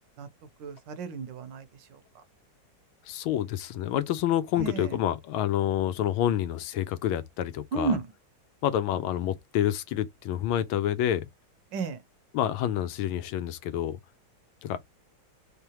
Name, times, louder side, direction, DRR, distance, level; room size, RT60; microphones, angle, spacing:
voice 1, 0.6-1.6 2.2-2.3 4.6-4.9 7.7-8.0 11.7-12.0, right 4 dB, 70° right, 1.3 m, -32 dB
voice 2, 3.1-8.0 8.6-11.3 12.3-14.0 14.6-14.8, left 11 dB, 85° left, 1.5 m, -28 dB
3.8 x 3.4 x 2.8 m
omnidirectional pair, 2.2 m